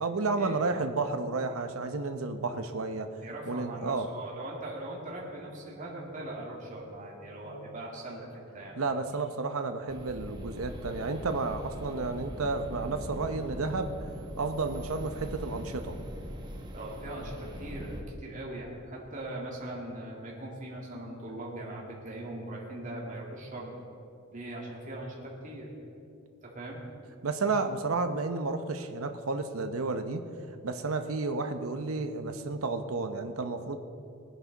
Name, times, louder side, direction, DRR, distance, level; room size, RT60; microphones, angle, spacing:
voice 1, 0.0-3.1 3.5-4.1 8.8-13.9 14.4-16.0 27.2-30.2 30.6-33.8, right 3 dB, 85° right, 7 dB, 0.8 m, -31 dB
voice 2, 3.2-8.8 16.7-23.7 24.3-25.9 26.4-26.8, right 1 dB, 40° right, -3 dB, 2.3 m, -40 dB
sound 1, 9.9-18.0, equal, 20° right, 1.2 m, -41 dB
19.5 x 10.5 x 4.0 m, 2.6 s
head